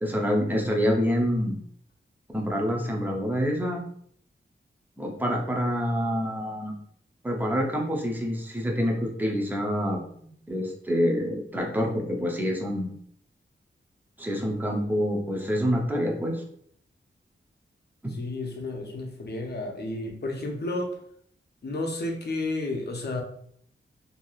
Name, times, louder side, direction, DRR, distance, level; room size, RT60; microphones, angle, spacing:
voice 1, 0.0-1.6 2.3-3.8 5.0-6.7 7.2-10.0 10.5-12.9 14.2-16.4 18.0-18.1, equal, 10° right, 0 dB, 0.6 m, -27 dB
voice 2, 18.1-21.0 21.6-23.2, left 2 dB, 55° left, 1 dB, 0.6 m, -32 dB
3.1 x 2.7 x 2.3 m, 0.64 s
wide cardioid pair, 120°, 20 cm